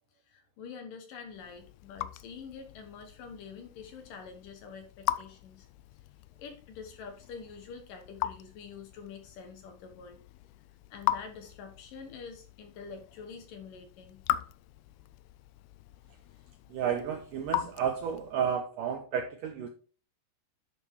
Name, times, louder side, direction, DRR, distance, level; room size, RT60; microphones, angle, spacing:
voice 1, 0.3-5.7 6.4-10.2 10.9-14.2, left 5 dB, 65° left, 5 dB, 2.6 m, -46 dB
Raindrop / Drip, 1.3-18.5, left 14 dB, 80° left, 2.4 m, -39 dB
voice 2, 16.7-19.7, right 8 dB, 75° right, 5 dB, 2.0 m, -32 dB
11.0 x 5.2 x 4.7 m, 0.36 s
omnidirectional pair, 4.7 m